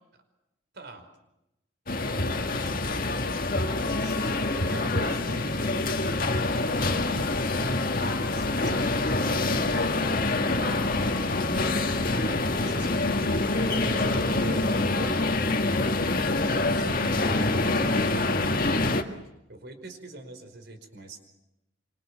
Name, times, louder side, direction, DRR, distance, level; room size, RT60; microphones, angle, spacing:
voice 1, 0.7-1.0 2.0-3.1 3.5-7.0 7.6-9.9 11.0-13.3 13.8-15.8 16.6-18.9 19.5-21.2, right 2 dB, 55° right, 6 dB, 5.0 m, -43 dB
sound 1, 1.9-19.0, left 2 dB, 45° left, 1.9 m, -26 dB
27.0 x 26.0 x 7.6 m, 0.90 s
head